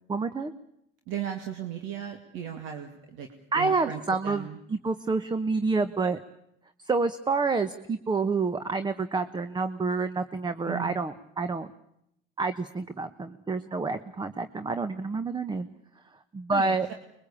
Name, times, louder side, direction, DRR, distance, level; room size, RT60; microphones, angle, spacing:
voice 1, 0.1-0.5 3.5-6.2 6.8-11.7 12.4-15.7 16.3-16.9, right 4 dB, 20° right, 11 dB, 1.1 m, -28 dB
voice 2, 1.1-3.3 3.5-4.6 10.6-11.0 16.5-16.9, right 9 dB, 70° right, 5 dB, 2.4 m, -36 dB
25.0 x 22.0 x 8.6 m, 0.76 s
supercardioid pair, 105°, 21 cm